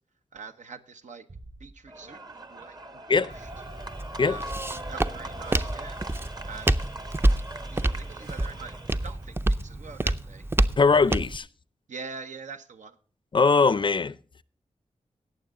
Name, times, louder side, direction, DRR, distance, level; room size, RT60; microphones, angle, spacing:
voice 1, 0.3-1.2 1.6-2.2 2.5-2.8 3.1-3.5 4.2-4.4 4.9-6.0 6.4-6.8 7.7-8.8 9.0-10.4 11.9-13.0, right 5 dB, 80° right, 1.0 m, -43 dB
Bass drum, 1.3-2.7, right 2 dB, 65° right, 6.5 m, -50 dB
sound 1, 1.9-9.3, right 1 dB, 35° right, 1.0 m, -41 dB
Walk footsteps, 3.3-11.4, right 1 dB, 20° right, 0.5 m, -28 dB
voice 2, 10.8-11.5 13.3-14.1, left 4 dB, 40° left, 0.5 m, -21 dB
18.5 x 7.1 x 3.7 m
wide cardioid pair, 85°, 12 cm